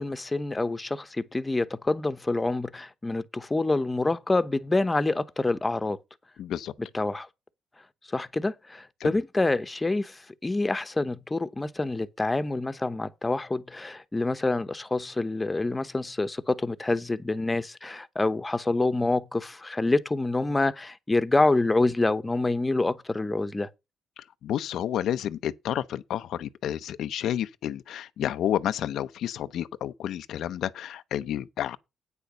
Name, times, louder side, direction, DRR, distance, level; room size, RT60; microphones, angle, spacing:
voice 1, 0.0-6.0 6.9-7.3 8.1-23.7, left 2 dB, 20° left, 1.0 m, -27 dB
voice 2, 6.4-6.7 9.0-9.1 24.4-31.8, left 11 dB, 75° left, 0.6 m, -30 dB
9.2 x 6.7 x 6.3 m
cardioid pair, 90°, 0 cm